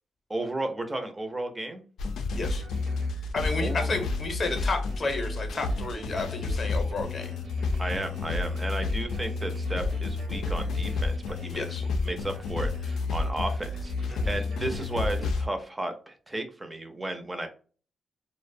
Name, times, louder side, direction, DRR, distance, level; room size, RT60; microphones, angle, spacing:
voice 1, 0.3-1.8 3.6-3.9 7.8-11.6 12.0-17.5, right 2 dB, 15° right, 6 dB, 0.4 m, -34 dB
sound 1, 2.0-15.5, left 3 dB, 90° left, 0.4 m, -30 dB
voice 2, 2.3-2.6 3.3-7.3 11.5-11.8 14.1-14.3, left 3 dB, 35° left, 5 dB, 0.6 m, -32 dB
sound 2, 2.3-15.3, right 2 dB, 60° right, 0.7 m, -46 dB
2.4 x 2.0 x 2.5 m, 0.39 s
wide cardioid pair, 160°, 0 cm